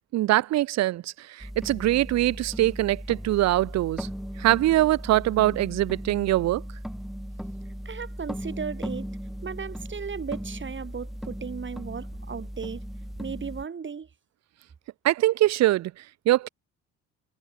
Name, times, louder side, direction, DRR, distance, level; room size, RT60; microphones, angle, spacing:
voice 1, 0.1-4.1 4.4-6.6 15.0-16.5, right 15 dB, 60° right, 0.5 m, -23 dB
sound 1, 1.4-13.6, equal, ahead, 0.8 m, -37 dB
voice 2, 7.8-12.8 13.2-14.1, right 6 dB, 40° right, 3.1 m, -36 dB
cardioid pair, 90°, 30 cm